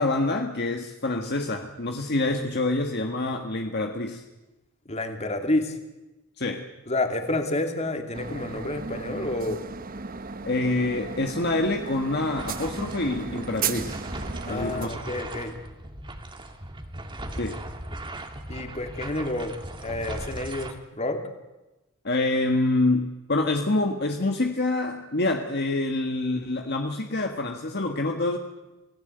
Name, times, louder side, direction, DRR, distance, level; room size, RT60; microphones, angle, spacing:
voice 1, 0.0-4.2 6.4-6.6 10.4-14.0 14.5-14.9 17.4-17.6 22.0-28.4, left 2 dB, 55° left, 4 dB, 1.6 m, -26 dB
voice 2, 4.9-5.8 6.9-9.6 14.5-15.6 18.5-19.5 19.8-21.2, left 2 dB, 30° left, 5 dB, 2.7 m, -29 dB
sound 1, 8.1-14.9, right 5 dB, 45° right, 1.0 m, -35 dB
sound 2, 12.4-20.7, right 1 dB, 25° right, 2.0 m, -38 dB
27.5 x 17.5 x 8.0 m, 1.1 s
head